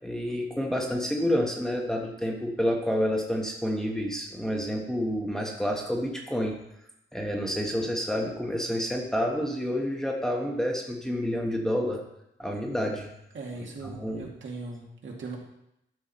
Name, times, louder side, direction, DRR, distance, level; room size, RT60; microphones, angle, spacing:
voice 1, 0.0-6.6 7.1-12.0 12.4-13.1 13.8-14.2, equal, ahead, 0 dB, 1.3 m, -29 dB
voice 2, 13.3-15.4, right 3 dB, 65° right, -1 dB, 2.4 m, -39 dB
12.0 x 7.0 x 4.4 m, 0.83 s
wide cardioid pair, 140°, 21 cm